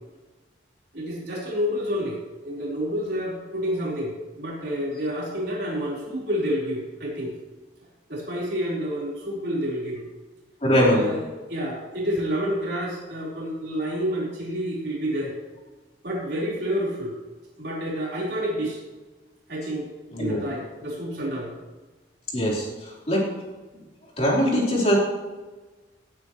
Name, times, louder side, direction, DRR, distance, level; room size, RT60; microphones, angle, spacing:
voice 1, 0.9-7.3 8.1-10.0 10.9-11.2 11.5-15.3 16.0-17.1 17.6-18.8 19.5-19.9 20.2-21.5, equal, 55° right, -5 dB, 4.0 m, -29 dB
voice 2, 10.6-11.1 20.1-20.4 22.3-23.2 24.2-25.0, equal, 35° left, -4 dB, 3.6 m, -21 dB
18.0 x 8.6 x 3.1 m, 1.2 s
head